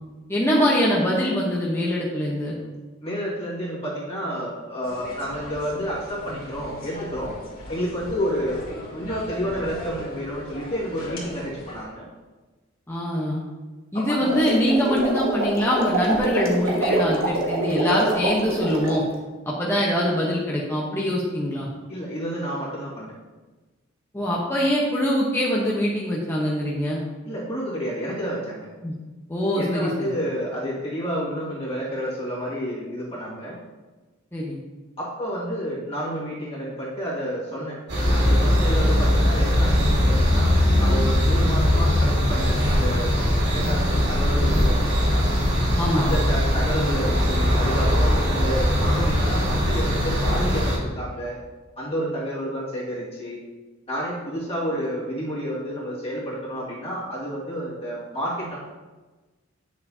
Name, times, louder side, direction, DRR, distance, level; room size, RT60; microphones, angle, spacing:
voice 1, 0.3-2.6 12.9-13.4 13.9-19.0 19.4-21.7 24.1-27.0 28.8-28.9 29.3-30.1 34.3-34.6 43.5-43.7 45.8-46.1, equal, 15° left, -5 dB, 1.0 m, -23 dB
voice 2, 3.0-7.3 7.7-8.6 8.9-12.1 13.9-14.3 21.9-23.1 27.3-28.7 29.6-33.6 35.0-37.8 38.1-45.3 45.9-51.4 51.8-53.4 53.9-58.6, equal, 30° left, -7 dB, 2.0 m, -30 dB
sound 1, 4.8-11.8, equal, 50° left, 2.3 m, -38 dB
sound 2, 14.1-19.0, right 2 dB, 85° right, 1.4 m, -25 dB
sound 3, 37.9-50.8, left 1 dB, 60° right, 2.5 m, -20 dB
9.3 x 6.9 x 2.8 m, 1.2 s
head